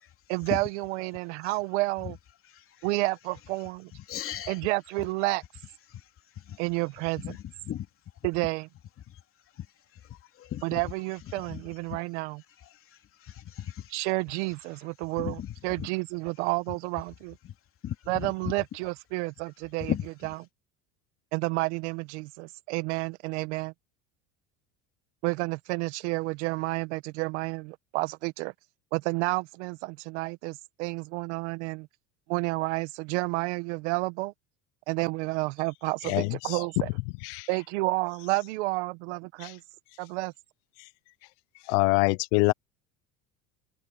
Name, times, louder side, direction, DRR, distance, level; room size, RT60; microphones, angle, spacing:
voice 1, 0.3-2.2 2.8-3.9 4.5-5.4 6.6-7.2 8.2-8.7 10.6-12.4 13.9-17.4 18.1-19.9 21.3-23.7 25.2-28.5 28.9-31.9 32.3-34.3 34.9-36.9 37.5-39.6 40.0-40.3, right 23 dB, 85° right, 1.5 m, -30 dB
voice 2, 2.4-2.9 3.9-4.6 5.9-6.1 6.3-6.6 7.2-7.9 8.2-8.3 9.1-9.2 9.5-9.7 9.9-10.9 11.3-12.0 12.6-14.0 15.2-15.9 17.4-17.5 17.8-18.5 19.8-20.3, left 11 dB, 40° left, 2.8 m, -38 dB
voice 3, 36.0-36.6 37.2-37.5 39.4-39.5 41.7-42.5, left 26 dB, 85° left, 0.7 m, -25 dB
cardioid pair, 130°, 34 cm